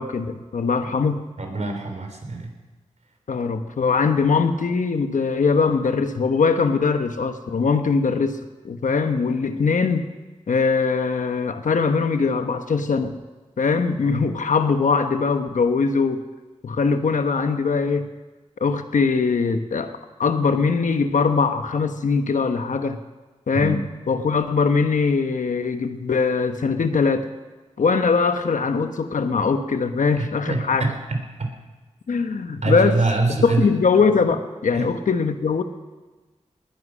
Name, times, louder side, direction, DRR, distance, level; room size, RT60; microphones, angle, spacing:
voice 1, 0.0-1.3 3.3-8.4 8.6-10.1 10.5-13.1 13.6-16.2 16.6-18.1 18.6-19.9 20.2-23.0 23.5-27.3 27.8-30.9 32.1-33.0 33.4-35.6, left 5 dB, 80° left, 8 dB, 1.1 m, -21 dB
voice 2, 1.4-2.5 23.5-23.8 30.2-31.5 32.6-33.7 34.7-34.9, right 3 dB, 60° right, 4 dB, 3.5 m, -24 dB
19.5 x 11.0 x 6.3 m, 1.2 s
cardioid pair, 45°, 13 cm